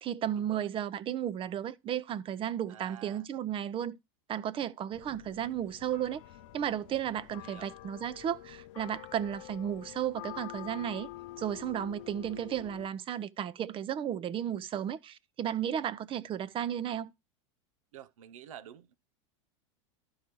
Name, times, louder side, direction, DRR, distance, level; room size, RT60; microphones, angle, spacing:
voice 1, 0.0-4.0 4.3-6.2 6.5-11.1 11.4-17.1, right 10 dB, 30° right, 0.7 m, -34 dB
voice 2, 2.7-3.3 7.4-7.7 17.9-19.0, right 10 dB, 80° right, 0.6 m, -49 dB
sound 1, 4.9-12.9, left 16 dB, 65° left, 0.6 m, -47 dB
12.0 x 4.8 x 4.5 m
hypercardioid pair, 105°, 17 cm